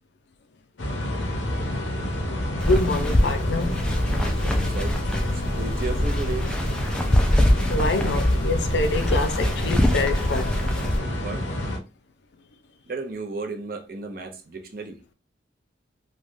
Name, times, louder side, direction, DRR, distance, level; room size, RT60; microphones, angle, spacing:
sound 1, 0.8-11.8, left 1 dB, 90° left, 0.8 m, -29 dB
voice 1, 2.5-3.9 7.7-10.6, left 2 dB, 70° left, 0.5 m, -26 dB
sound 2, 2.6-11.0, left 1 dB, 5° left, 0.3 m, -24 dB
voice 2, 4.4-5.1 5.3-6.5 11.2-11.5 12.9-15.0, right 3 dB, 50° right, 0.6 m, -34 dB
3.2 x 2.3 x 2.5 m
head